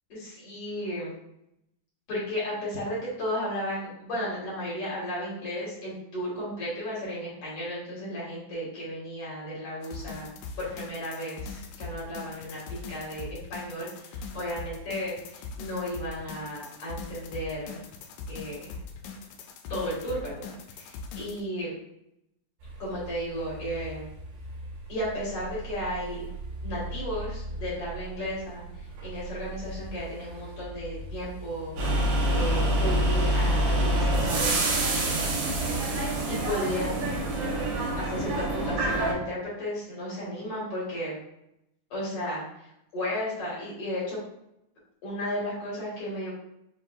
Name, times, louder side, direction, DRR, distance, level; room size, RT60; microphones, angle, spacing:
voice 1, 0.1-1.1 2.1-10.3 10.6-17.8 18.3-18.7 19.7-21.7 22.8-24.1 24.9-26.3 26.6-35.2 36.3-37.2 38.0-41.2 41.9-42.7 42.9-44.2 45.0-46.3, equal, 50° left, -7 dB, 2.3 m, -34 dB
sound 1, 9.8-21.4, left 4 dB, 80° left, 2.1 m, -41 dB
sound 2, 22.6-36.4, right 2 dB, 65° right, 2.4 m, -41 dB
sound 3, 31.8-39.1, right 1 dB, 85° right, 3.0 m, -26 dB
6.2 x 3.5 x 2.3 m, 0.81 s
omnidirectional pair, 4.0 m